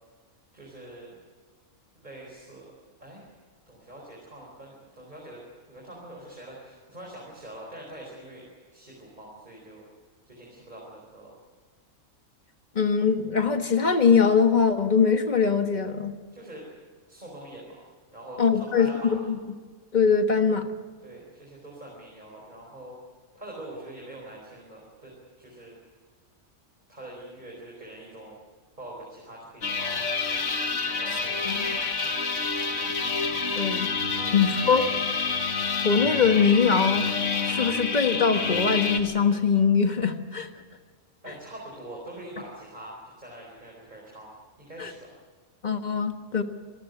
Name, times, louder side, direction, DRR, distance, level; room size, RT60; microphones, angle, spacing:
voice 1, 0.5-1.2 1.9-2.6 3.0-3.2 3.7-5.4 5.7-9.8 10.2-11.3 16.3-16.7 17.1-17.8 18.1-19.3 21.0-23.0 23.3-25.8 26.9-28.3 28.8-30.0 30.8-31.8 34.1-35.0 35.6-35.9 41.2-44.3 44.6-45.1, right 1 dB, 35° right, -2 dB, 4.8 m, -44 dB
voice 2, 12.7-16.1 18.4-19.4 19.9-20.7 31.1-31.2 31.4-31.7 33.6-33.9 34.3-34.9 35.8-40.5 44.8-44.9 45.6-46.4, left 6 dB, 35° left, 7 dB, 1.4 m, -22 dB
sound 1, 29.6-39.0, left 4 dB, 65° left, 2.0 m, -28 dB
26.5 x 14.0 x 9.4 m, 1.5 s
omnidirectional pair, 1.4 m